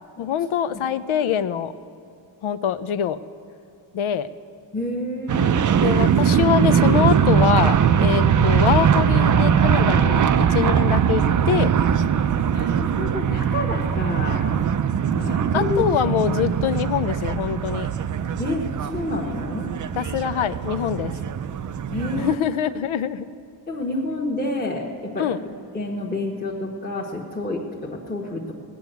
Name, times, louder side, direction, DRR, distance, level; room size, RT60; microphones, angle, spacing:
voice 1, 0.2-1.7 2.4-3.2 3.9-4.3 5.8-11.8 15.5-17.9 20.0-21.1 22.2-23.3 25.2-25.4, left 9 dB, 80° left, 14 dB, 0.7 m, -24 dB
voice 2, 4.7-5.7 8.1-8.3 12.5-14.6 15.1-15.8 18.4-19.7 21.9-22.3 23.7-28.5, left 2 dB, 20° left, -2 dB, 1.2 m, -29 dB
sound 1, 5.3-22.3, right 8 dB, 40° right, 0.4 m, -21 dB
19.0 x 7.0 x 9.1 m, 2.7 s
wide cardioid pair, 165°, 47 cm